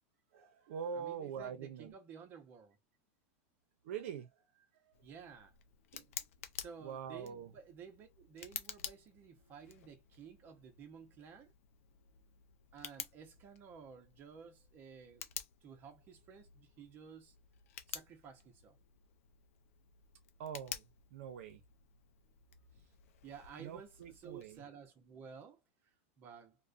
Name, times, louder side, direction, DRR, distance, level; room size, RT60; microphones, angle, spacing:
voice 1, 0.3-1.9 3.8-4.3 5.9-6.0 6.8-7.5 20.4-21.6 23.6-24.6, right 7 dB, 65° right, 0.6 m, -44 dB
voice 2, 0.9-2.8 5.0-5.5 6.6-11.5 12.7-15.3 15.6-17.3 17.9-18.8 23.2-26.6, right 7 dB, 25° right, 0.7 m, -54 dB
Tick, 4.9-24.6, left 10 dB, 85° left, 0.5 m, -51 dB
2.4 x 2.1 x 2.4 m
supercardioid pair, 165°, 7 cm